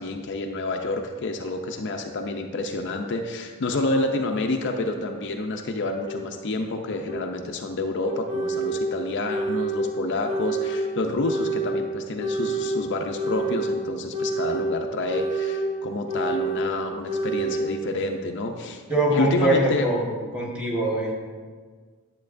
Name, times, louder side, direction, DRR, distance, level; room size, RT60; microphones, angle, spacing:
voice 1, 0.0-18.8 19.1-19.9 20.4-20.5, left 2 dB, 55° left, 3 dB, 0.5 m, -28 dB
sound 1, 6.1-6.2 7.1-7.2 8.1-8.8 9.3-9.8 10.2-10.8 11.2-11.8 12.2-12.7 13.2-13.7 14.1-14.7 15.1-15.6 16.1-16.6 17.1-17.6, right 3 dB, 35° right, 1.7 m, -27 dB
voice 2, 18.9-20.1 20.3-21.1, right 1 dB, 5° right, -4 dB, 1.4 m, -22 dB
10.5 x 7.6 x 2.5 m, 1.5 s
head